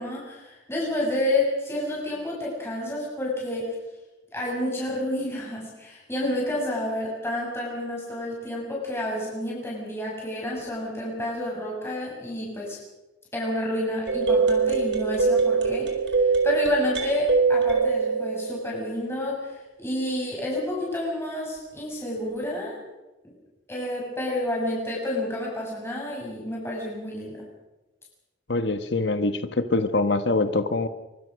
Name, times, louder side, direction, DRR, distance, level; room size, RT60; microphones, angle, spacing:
voice 1, 0.0-3.7 4.3-12.8 13.3-22.8 23.7-27.4, left 1 dB, 15° left, -4 dB, 7.5 m, -29 dB
sound 1, 14.1-19.2, right 4 dB, 70° right, 4.6 m, -23 dB
voice 2, 28.5-30.9, left 2 dB, 70° left, 10 dB, 1.3 m, -24 dB
24.5 x 23.5 x 6.5 m, 1.0 s
head